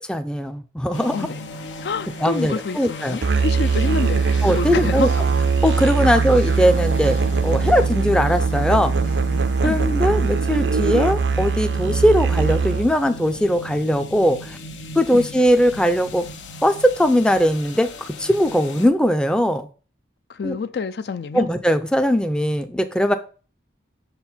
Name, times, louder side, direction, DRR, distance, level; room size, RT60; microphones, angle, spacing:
voice 1, 0.1-1.3 2.2-3.2 4.4-5.1 5.6-8.9 9.6-14.6 15.0-16.3 16.6-19.7 20.4-20.6 21.3-23.2, equal, 5° left, 0.4 m, -20 dB
sound 1, 0.9-18.9, left 1 dB, 90° left, 0.9 m, -36 dB
voice 2, 1.8-5.1 6.0-6.2 9.6-9.8 15.1-15.2 20.3-21.5, left 4 dB, 65° left, 0.4 m, -27 dB
Musical instrument, 3.2-13.0, right 5 dB, 70° right, 0.5 m, -21 dB
5.9 x 4.5 x 5.6 m
head